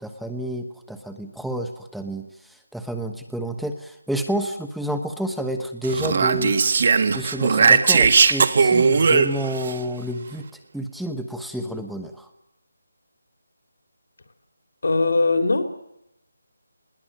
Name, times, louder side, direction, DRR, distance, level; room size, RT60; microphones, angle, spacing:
voice 1, 0.0-6.6 7.1-10.5 10.7-12.3, right 1 dB, ahead, 5 dB, 1.1 m, -30 dB
Speech, 5.8-9.7, right 5 dB, 45° right, 1.7 m, -18 dB
voice 2, 14.8-15.8, left 3 dB, 75° left, 5 dB, 3.7 m, -20 dB
20.5 x 18.0 x 9.2 m, 0.84 s
figure-of-eight pair, 165°, 0 cm